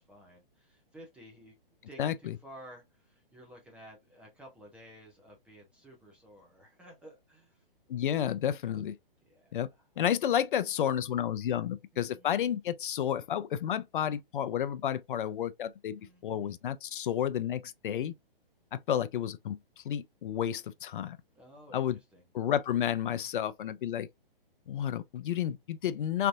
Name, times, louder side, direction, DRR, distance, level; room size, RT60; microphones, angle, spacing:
voice 1, 0.0-1.6 1.9-7.6 9.2-9.8 11.9-12.3 16.0-16.6 21.3-22.2, equal, 5° right, 0.4 m, -54 dB
voice 2, 2.0-2.3 7.9-8.9 9.5-9.7 10.0-18.1 18.7-21.2 21.7-22.0 22.3-24.1 24.7-26.3, left 10 dB, 60° left, 0.4 m, -31 dB
3.4 x 2.5 x 2.3 m
hypercardioid pair, 130°, 29 cm